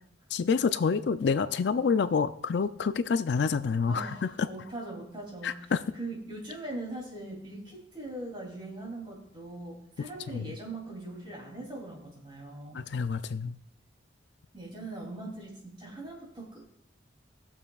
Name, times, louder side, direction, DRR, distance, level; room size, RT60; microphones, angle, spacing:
voice 1, 0.3-4.5 5.4-5.8 10.3-10.5 12.7-13.6, left 5 dB, 65° left, 12 dB, 0.4 m, -28 dB
voice 2, 3.9-5.7 6.0-12.8 14.5-16.7, right 2 dB, 25° right, -2 dB, 2.9 m, -41 dB
19.0 x 7.1 x 2.4 m, 0.70 s
head